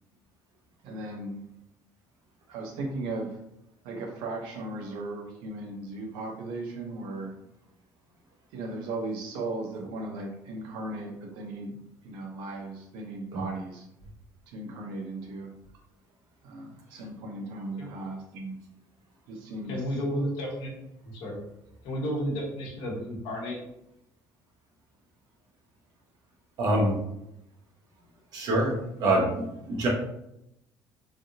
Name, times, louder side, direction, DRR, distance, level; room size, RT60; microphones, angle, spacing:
voice 1, 0.8-1.4 2.5-3.4 3.8-7.3 8.5-11.8 12.0-13.9 14.5-15.5 16.4-18.6 19.3-19.8, right 2 dB, 85° right, 1 dB, 0.7 m, -37 dB
voice 2, 19.7-20.7 21.0-21.4 21.8-23.6, equal, 80° left, -2 dB, 1.0 m, -32 dB
voice 3, 26.6-27.0 28.3-28.7 29.0-29.9, right 1 dB, 55° right, -1 dB, 0.9 m, -25 dB
3.4 x 2.4 x 2.7 m, 0.83 s
cardioid pair, 155°, 8 cm